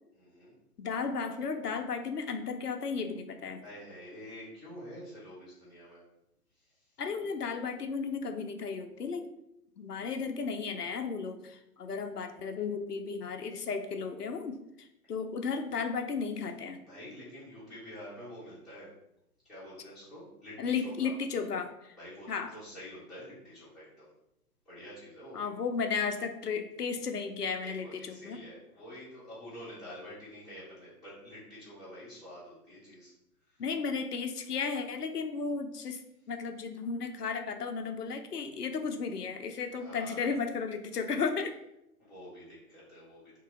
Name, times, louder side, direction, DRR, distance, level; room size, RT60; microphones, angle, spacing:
voice 1, 0.1-0.5 3.6-6.0 6.6-6.8 16.9-18.9 19.4-21.1 22.0-24.1 24.6-25.5 27.6-33.1 33.5-33.6 39.8-40.4 42.0-43.3, equal, ahead, -13 dB, 0.9 m, -48 dB
voice 2, 0.8-3.6 7.0-9.3 9.8-16.8 20.6-21.9 22.3-22.5 25.3-28.4 33.6-36.0 36.3-41.5, left 5 dB, 75° left, 6 dB, 0.6 m, -34 dB
2.9 x 2.7 x 3.7 m, 0.83 s
figure-of-eight pair, 125°, 47 cm